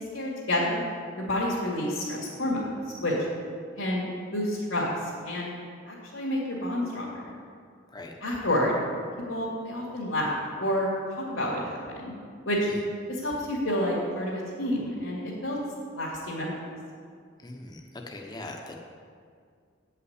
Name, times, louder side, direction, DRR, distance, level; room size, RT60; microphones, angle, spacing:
voice 1, 0.1-0.8 1.2-3.1 3.8-4.9 5.2-5.5 5.9-7.3 8.2-8.8 9.3-10.9 11.3-12.1 12.4-12.7 13.1-15.6 15.9-16.6, left 1 dB, 80° left, -7 dB, 2.3 m, -29 dB
voice 2, 17.4-18.8, left 2 dB, 20° left, 1 dB, 0.9 m, -41 dB
9.2 x 5.7 x 8.0 m, 2.1 s
head